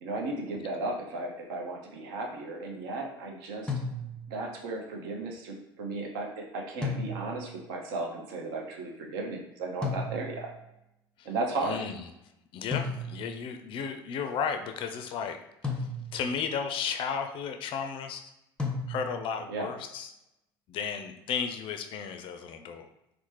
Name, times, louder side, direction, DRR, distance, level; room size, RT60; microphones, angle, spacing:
voice 1, 0.0-3.7 4.3-10.5 11.2-11.8 19.5-19.7, right 2 dB, 65° right, 1 dB, 0.7 m, -35 dB
sound 1, 3.7-4.4 6.8-7.6 9.8-10.6 12.7-13.5 15.6-16.4 18.6-19.4, left 3 dB, 5° left, 0.6 m, -34 dB
voice 2, 11.6-12.0 12.5-15.4 15.8-18.3 18.9-20.1 20.7-22.9, left 6 dB, 45° left, 7 dB, 0.4 m, -34 dB
4.1 x 2.0 x 3.1 m, 0.85 s
figure-of-eight pair, 65°, 12 cm